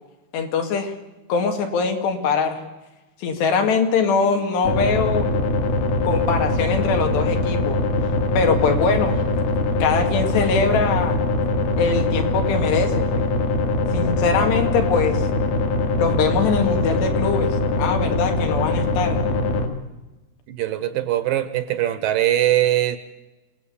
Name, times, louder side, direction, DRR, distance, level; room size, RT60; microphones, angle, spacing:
voice 1, 0.3-0.9 1.3-2.6 3.2-5.3 6.0-7.8 8.4-9.2 9.8-11.2 11.8-13.2 13.9-15.3 16.0-17.5 17.8-19.2, left 5 dB, 85° left, 5 dB, 4.5 m, -22 dB
sound 1, 4.6-19.7, left 2 dB, 65° left, 3.8 m, -22 dB
voice 2, 20.5-23.0, right 13 dB, 75° right, 12 dB, 2.3 m, -21 dB
26.0 x 18.5 x 8.5 m, 1.1 s
omnidirectional pair, 4.8 m